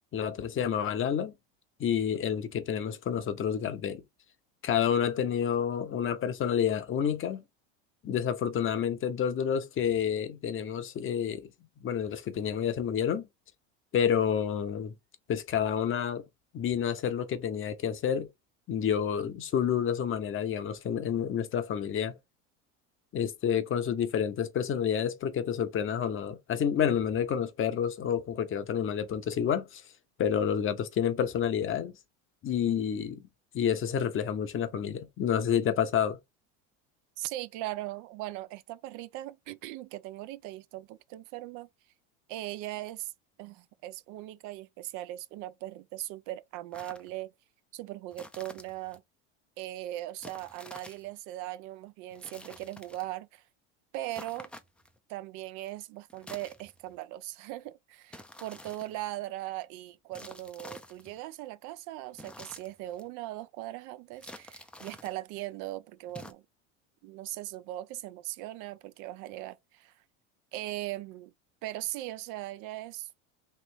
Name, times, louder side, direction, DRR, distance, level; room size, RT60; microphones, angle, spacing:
voice 1, 0.1-1.3 1.8-4.0 4.6-7.4 8.0-11.5 11.8-13.3 13.9-14.9 15.3-16.2 16.5-18.3 18.7-22.1 23.1-29.8 30.2-31.9 32.4-33.2 33.5-36.2, left 8 dB, 35° left, 0.8 m, -29 dB
voice 2, 37.2-41.7 42.3-43.1 43.4-47.3 47.7-49.0 49.6-53.4 53.9-54.5 55.1-66.4 67.0-69.9 70.5-71.3 71.6-73.1, right 15 dB, 60° right, 0.5 m, -39 dB
sound 1, 46.7-47.1 48.1-49.0 50.2-51.1 52.1-53.1 54.1-55.0 56.1-57.0 58.1-59.1 60.1-61.2 62.1-63.1 64.1-65.2 66.1-66.3, left 1 dB, 5° left, 0.5 m, -49 dB
3.2 x 3.0 x 4.4 m
supercardioid pair, 105°, 36 cm